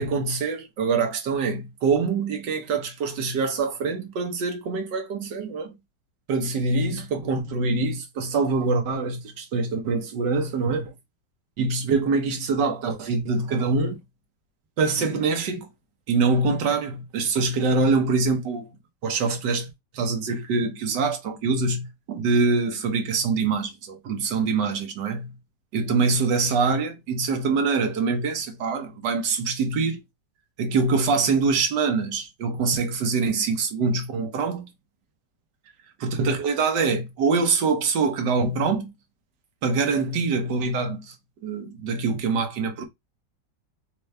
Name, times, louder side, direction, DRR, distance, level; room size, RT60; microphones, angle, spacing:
voice 1, 0.0-5.7 6.3-10.9 11.6-14.0 14.8-15.7 16.1-18.7 19.0-19.7 19.9-25.3 25.7-30.0 30.6-34.7 36.0-38.9 39.6-41.1 41.4-42.8, right 4 dB, 80° right, 1.6 m, -24 dB
4.5 x 2.7 x 3.2 m
omnidirectional pair, 1.9 m